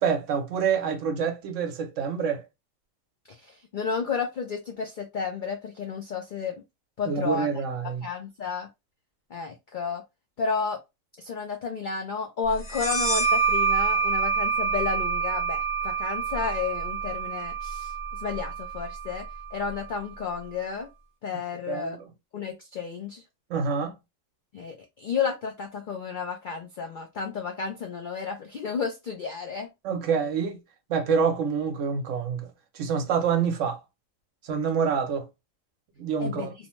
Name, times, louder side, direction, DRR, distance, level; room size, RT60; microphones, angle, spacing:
voice 1, 0.0-2.4 7.1-8.0 21.7-22.0 23.5-23.9 29.8-30.6 30.9-32.5 32.7-33.8 34.4-35.3 36.0-36.5, right 6 dB, 70° right, 1.0 m, -27 dB
voice 2, 3.3-6.6 7.0-7.5 8.0-8.7 9.3-10.0 10.4-10.8 11.2-20.9 21.2-22.0 22.3-23.2 24.5-29.7 36.2-36.5, left 5 dB, 70° left, 0.4 m, -32 dB
sound 1, 12.7-20.0, right 5 dB, 25° left, 0.7 m, -27 dB
2.7 x 2.1 x 2.9 m
omnidirectional pair, 1.4 m